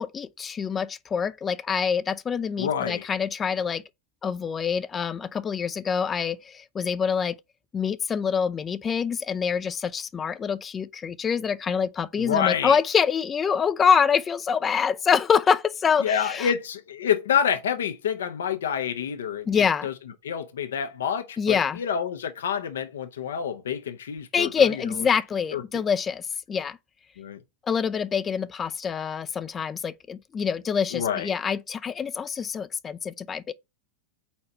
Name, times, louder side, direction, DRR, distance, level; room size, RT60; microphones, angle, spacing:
voice 1, 0.0-3.8 4.2-7.4 7.7-16.5 19.5-19.9 21.4-21.8 24.3-26.8 27.7-33.5, left 6 dB, 25° left, 0.4 m, -25 dB
voice 2, 2.6-3.1 12.2-12.8 16.0-19.5 19.8-19.9 20.2-24.7 25.5-25.8 27.2-27.4 30.9-31.3, left 8 dB, 80° left, 0.7 m, -28 dB
4.3 x 4.2 x 5.2 m
hypercardioid pair, 105°, 0 cm